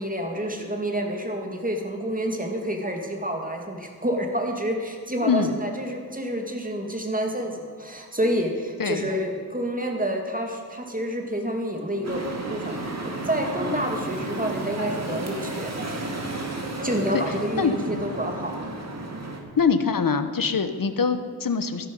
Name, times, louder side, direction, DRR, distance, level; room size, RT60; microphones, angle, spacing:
voice 1, 0.0-12.9 13.2-16.1 16.8-18.6, equal, 25° right, 2 dB, 2.3 m, -28 dB
voice 2, 5.2-5.6 8.8-9.1 17.1-17.2 17.6-17.7 19.6-21.9, left 5 dB, 65° left, 10 dB, 1.1 m, -23 dB
sound 1, 12.0-19.4, right 2 dB, 45° right, 2.2 m, -32 dB
13.0 x 11.0 x 5.5 m, 2.1 s
wide cardioid pair, 65°, 36 cm